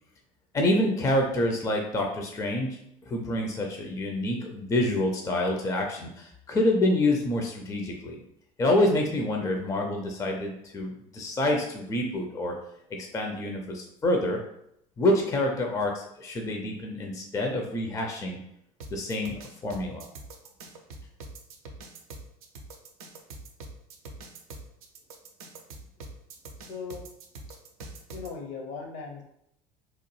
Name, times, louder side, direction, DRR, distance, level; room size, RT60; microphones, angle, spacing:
voice 1, 0.5-8.2 8.6-12.5 13.1-14.4 15.0-18.4 18.9-20.1, left 1 dB, 15° left, 1 dB, 0.4 m, -27 dB
sound 1, 18.8-28.3, right 2 dB, 70° right, 0.5 m, -44 dB
voice 2, 26.6-27.0 28.1-29.2, left 5 dB, 60° left, 1 dB, 0.8 m, -38 dB
2.9 x 2.1 x 3.0 m, 0.75 s
figure-of-eight pair, 70°, 20 cm